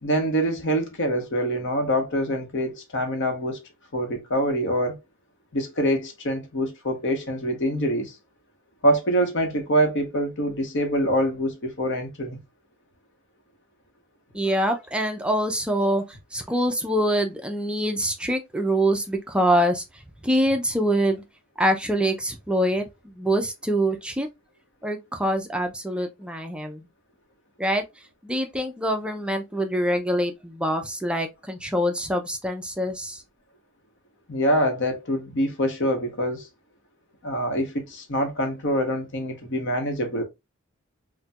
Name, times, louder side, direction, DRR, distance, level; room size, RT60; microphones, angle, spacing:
voice 1, 0.0-3.6 3.9-5.0 5.5-8.1 8.8-12.4 34.3-36.5 37.2-40.2, equal, 60° left, 0.9 m, -25 dB
voice 2, 14.3-16.0 16.3-19.8 20.2-21.2 21.6-22.9 23.1-24.3 24.8-26.8 27.6-27.8 28.2-33.2, equal, 5° right, 0.4 m, -24 dB
4.2 x 2.2 x 2.3 m
head